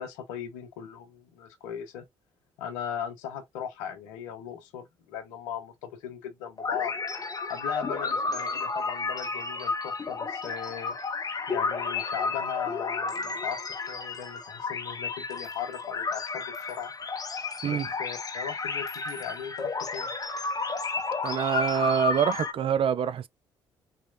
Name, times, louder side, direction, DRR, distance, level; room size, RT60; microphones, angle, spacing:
voice 1, 0.0-2.0 2.6-6.9 7.5-10.9 11.5-16.9 17.7-20.1, left 8 dB, 80° left, 0.9 m, -38 dB
sound 1, 6.6-22.5, left 4 dB, 30° left, 0.9 m, -32 dB
voice 2, 21.2-23.3, right 8 dB, 50° right, 0.5 m, -25 dB
4.3 x 3.0 x 2.6 m
hypercardioid pair, 55°, 12 cm